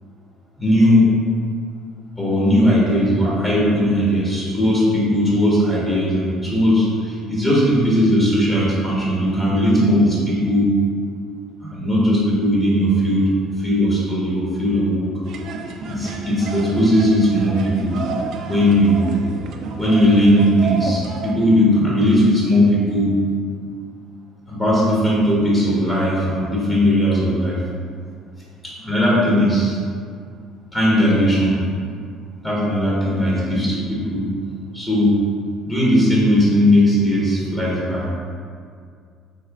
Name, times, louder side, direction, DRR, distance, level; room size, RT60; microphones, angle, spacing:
voice 1, 0.6-1.2 2.2-10.8 11.6-13.3 13.6-15.1 15.8-18.0 18.5-19.1 19.8-23.2 24.5-27.6 28.6-29.8 30.7-31.6 32.4-34.3 34.7-35.2 35.6-38.1, equal, 20° left, -7 dB, 1.2 m, -18 dB
sound 1, 15.2-21.3, right 3 dB, 60° right, 0.3 m, -30 dB
4.2 x 3.1 x 2.4 m, 2.2 s
hypercardioid pair, 60°, 0 cm